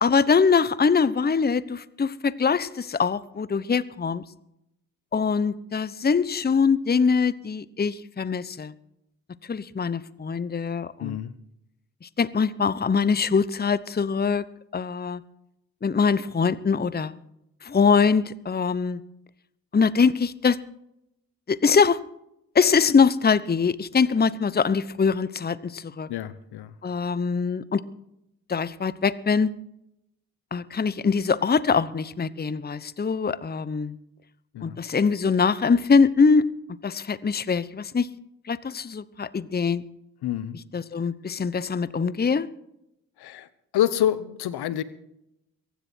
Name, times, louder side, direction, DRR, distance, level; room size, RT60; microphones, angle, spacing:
voice 1, 0.0-4.2 5.1-8.7 9.5-11.2 12.0-14.4 14.7-15.2 15.8-17.2 17.6-19.0 19.7-20.6 21.5-22.0 22.5-26.1 26.8-27.8 28.5-29.5 30.5-33.9 34.6-36.5 36.8-38.1 38.5-39.8 40.7-42.5, left 5 dB, 25° left, 17 dB, 0.9 m, -23 dB
voice 2, 11.0-11.3 26.1-26.7 34.5-34.8 40.2-40.6 43.2-43.5 43.7-44.8, left 11 dB, 65° left, 16 dB, 1.1 m, -27 dB
23.0 x 10.5 x 4.6 m, 0.80 s
hypercardioid pair, 40°, 41 cm